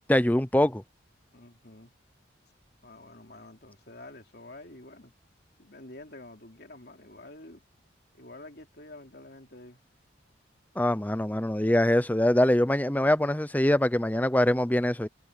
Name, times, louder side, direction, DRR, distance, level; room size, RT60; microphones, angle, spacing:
voice 1, 0.1-0.8 10.8-15.1, left 1 dB, 10° left, 0.6 m, -23 dB
voice 2, 1.3-1.9 2.8-5.1 5.6-7.6 8.1-9.8, left 2 dB, 55° left, 3.2 m, -48 dB
head